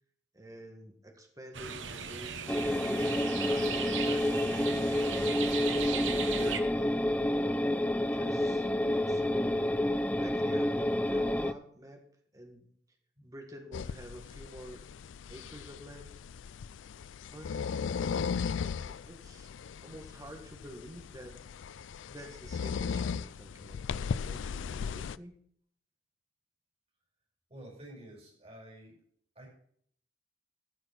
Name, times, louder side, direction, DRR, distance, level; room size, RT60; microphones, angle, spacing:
voice 1, 0.3-3.1 3.5-7.1 8.0-8.7 9.0-9.8 10.1-12.0 12.3-12.7 13.2-14.9 15.3-16.2 17.3-18.2 18.6-19.5 19.8-21.4 22.1-25.4, equal, 20° right, 3 dB, 1.7 m, -48 dB
sound 1, 1.5-6.6, right 7 dB, 85° right, 1.0 m, -37 dB
sound 2, 2.5-11.5, left 1 dB, 10° left, 0.4 m, -29 dB
sound 3, 13.7-25.2, left 6 dB, 85° left, 0.4 m, -37 dB
voice 2, 27.5-29.0 29.3-29.5, right 1 dB, 35° right, 0 dB, 5.3 m, -50 dB
14.5 x 6.5 x 6.0 m, 0.62 s
head